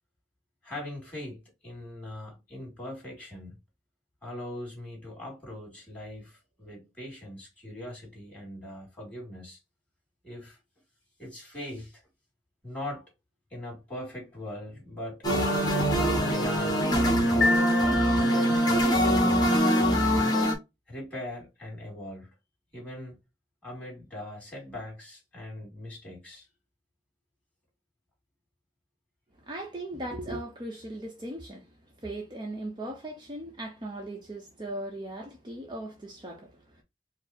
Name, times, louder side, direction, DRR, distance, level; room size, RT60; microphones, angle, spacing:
voice 1, 0.6-3.6 4.2-9.6 10.2-10.6 11.2-12.0 12.6-13.0 13.5-15.3 16.3-17.6 18.1-19.6 20.9-22.3 22.7-23.2 23.6-26.5, left 1 dB, 10° left, 2.4 m, -41 dB
sound 1, 15.2-20.5, equal, 25° left, 1.3 m, -23 dB
sound 2, 17.4-18.9, left 4 dB, 75° left, 0.7 m, -29 dB
voice 2, 29.4-31.7 32.0-36.8, right 1 dB, 25° right, 0.7 m, -38 dB
4.6 x 2.0 x 4.1 m
head